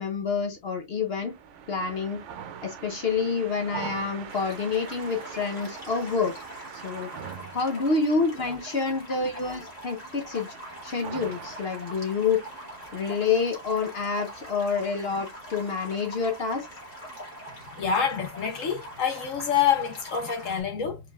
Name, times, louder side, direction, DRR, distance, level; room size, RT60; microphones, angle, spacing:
voice 1, 0.0-1.3 1.7-2.2 2.6-6.4 6.7-7.1 7.5-10.6 10.8-12.4 12.9-16.7, left 5 dB, 55° left, 0.9 m, -28 dB
sound 1, 1.0-20.5, right 8 dB, 75° right, 1.0 m, -45 dB
sound 2, 4.3-20.6, equal, 40° left, 2.1 m, -43 dB
voice 2, 17.8-21.0, left 7 dB, 85° left, 1.6 m, -26 dB
4.9 x 3.2 x 2.2 m
omnidirectional pair, 1.3 m